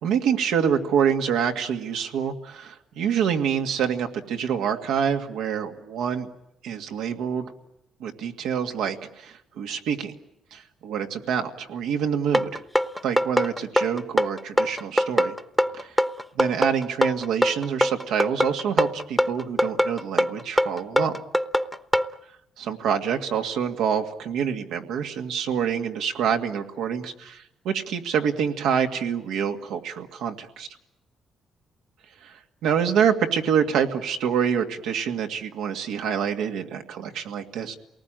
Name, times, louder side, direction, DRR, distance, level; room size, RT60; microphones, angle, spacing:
voice 1, 0.0-6.3 6.6-7.5 8.0-10.2 10.5-12.6 13.0-15.4 15.7-16.0 16.3-21.2 22.6-30.7 32.2-37.8, right 7 dB, 90° right, 4 dB, 2.1 m, -26 dB
sound 1, 12.3-22.1, equal, ahead, 1.0 m, -22 dB
28.0 x 19.0 x 9.0 m, 0.88 s
cardioid pair, 90°, 0 cm